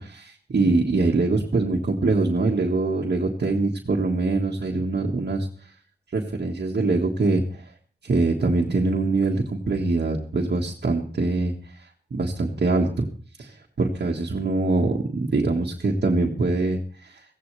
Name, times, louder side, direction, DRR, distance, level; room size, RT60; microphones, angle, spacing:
voice 1, 0.0-5.5 6.1-7.7 8.0-13.1 13.4-17.2, right 3 dB, 75° right, -2 dB, 1.7 m, -24 dB
16.5 x 16.0 x 3.4 m, 0.42 s
wide cardioid pair, 60°, 17 cm